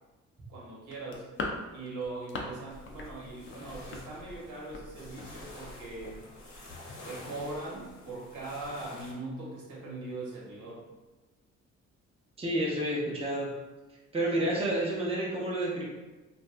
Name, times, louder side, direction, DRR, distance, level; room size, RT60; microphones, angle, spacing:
voice 1, 0.5-1.3 1.7-6.2 7.1-10.8, right 2 dB, 80° right, -5 dB, 1.3 m, -40 dB
sound 1, 0.9-2.6 2.9-3.1 3.4-4.9 5.2-5.3 5.6-5.8 6.0-6.2, left 3 dB, 40° left, 0.5 m, -39 dB
sound 2, 2.7-9.1, left 1 dB, 75° left, 1.1 m, -48 dB
voice 2, 12.4-13.5 14.1-15.8, right 1 dB, 20° right, -5 dB, 0.8 m, -29 dB
2.5 x 2.4 x 3.3 m, 1.2 s
cardioid pair, 90°, 30 cm